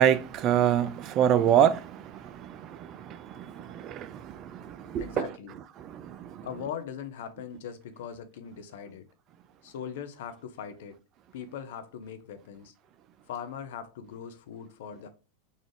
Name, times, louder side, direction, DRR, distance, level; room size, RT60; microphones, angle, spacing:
voice 1, 0.0-5.3 5.8-6.5, right 10 dB, 40° right, 0.3 m, -26 dB
voice 2, 5.0-5.6 6.4-9.1 9.6-11.0 11.3-12.7 13.3-15.1, left 8 dB, 70° left, 0.6 m, -40 dB
3.9 x 2.4 x 3.2 m
hypercardioid pair, 95°, 0 cm